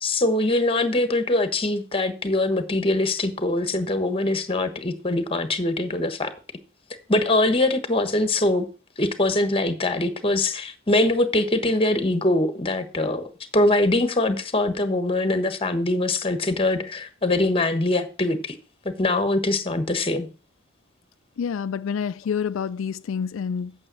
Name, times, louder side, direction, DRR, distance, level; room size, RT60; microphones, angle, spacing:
voice 1, 0.0-6.3 7.1-8.7 9.0-13.3 13.5-18.5 19.0-20.3, left 2 dB, 30° left, 1.3 m, -23 dB
voice 2, 21.4-23.9, left 6 dB, 85° left, 0.4 m, -28 dB
8.8 x 6.9 x 6.2 m
head